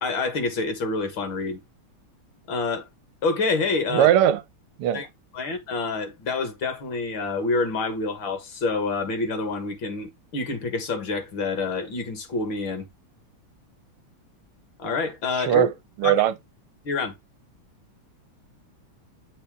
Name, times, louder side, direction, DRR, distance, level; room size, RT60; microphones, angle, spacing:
voice 1, 0.0-1.6 2.5-2.9 3.2-4.1 4.9-5.1 5.3-12.9 14.8-15.7 16.0-16.2 16.8-17.2, left 3 dB, 65° left, 2.1 m, -27 dB
voice 2, 3.9-4.4 4.8-5.0 15.5-15.7 16.0-16.3, right 11 dB, 80° right, 1.6 m, -19 dB
8.7 x 4.3 x 3.6 m
omnidirectional pair, 2.4 m